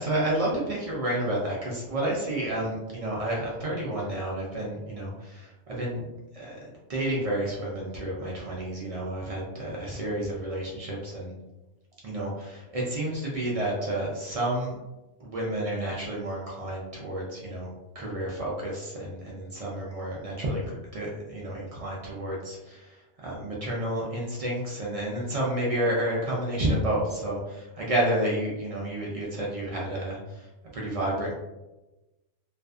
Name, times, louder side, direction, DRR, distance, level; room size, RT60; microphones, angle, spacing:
voice 1, 0.0-6.1 6.3-11.3 12.0-14.8 15.2-31.3, right 1 dB, 70° right, -4 dB, 0.3 m, -30 dB
2.4 x 2.4 x 2.3 m, 1.0 s
omnidirectional pair, 1.2 m